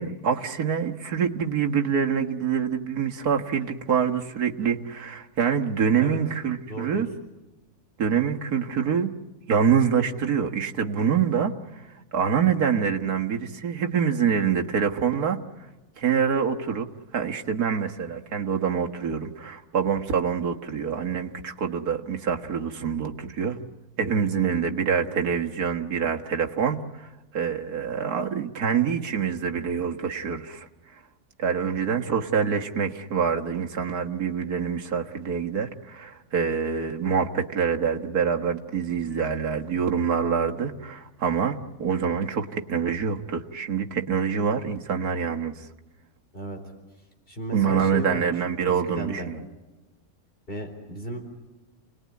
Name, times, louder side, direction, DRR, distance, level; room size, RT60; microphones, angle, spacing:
voice 1, 0.0-7.1 8.0-9.1 9.5-11.8 12.1-15.4 16.0-16.9 17.1-23.6 24.0-30.7 31.4-45.7 47.5-49.4, right 7 dB, 85° right, 3 dB, 2.1 m, -26 dB
voice 2, 6.7-7.1 24.0-24.3 46.3-46.6 47.3-48.3 48.6-49.3 50.5-51.2, right 1 dB, 35° left, 2 dB, 4.3 m, -34 dB
29.5 x 20.0 x 9.6 m, 1.1 s
omnidirectional pair, 1.6 m